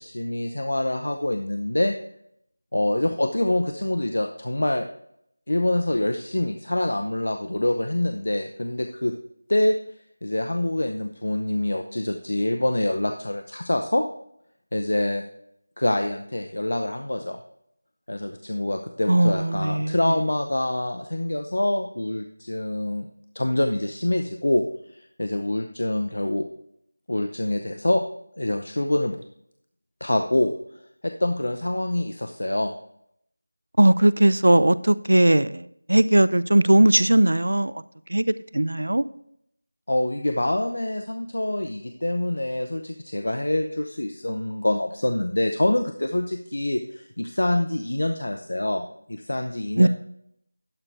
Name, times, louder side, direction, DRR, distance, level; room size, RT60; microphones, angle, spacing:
voice 1, 0.0-1.9 2.7-4.8 5.5-9.1 9.5-9.7 10.2-14.0 14.7-15.2 15.8-17.4 18.1-23.1 23.3-24.6 24.9-26.4 27.1-28.0 28.4-29.2 30.0-30.5 31.0-32.7 39.9-49.9, left 1 dB, 70° left, 6 dB, 0.7 m, -25 dB
voice 2, 19.1-20.1 33.8-37.7 38.1-39.0 49.8-49.9, right 1 dB, 75° right, 17 dB, 0.4 m, -19 dB
12.0 x 4.4 x 4.4 m, 0.72 s
figure-of-eight pair, 180°, 0 cm